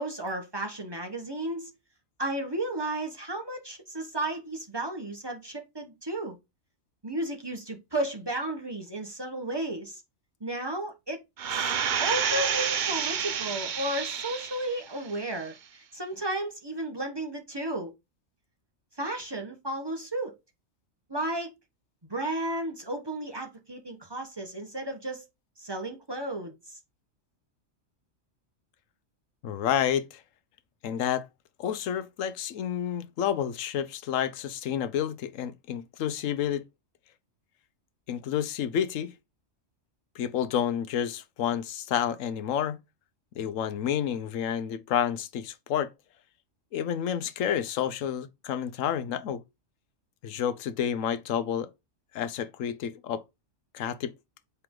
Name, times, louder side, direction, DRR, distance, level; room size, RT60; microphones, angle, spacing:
voice 1, 0.0-1.7 2.2-6.4 7.0-10.0 10.4-11.2 11.5-17.9 19.0-20.4 21.1-21.5 22.1-25.2 25.6-26.8, right 1 dB, 20° right, 1.1 m, -33 dB
sound 1, 11.4-14.8 15.2-15.3, right 7 dB, 50° right, 0.6 m, -29 dB
voice 2, 29.4-30.2 30.8-31.3 31.6-36.6 38.1-39.1 40.2-42.8 43.3-45.9 46.7-49.4 50.2-51.7 52.1-53.2 53.7-54.1, left 9 dB, 80° left, 1.1 m, -29 dB
7.6 x 3.4 x 3.7 m
omnidirectional pair, 1.4 m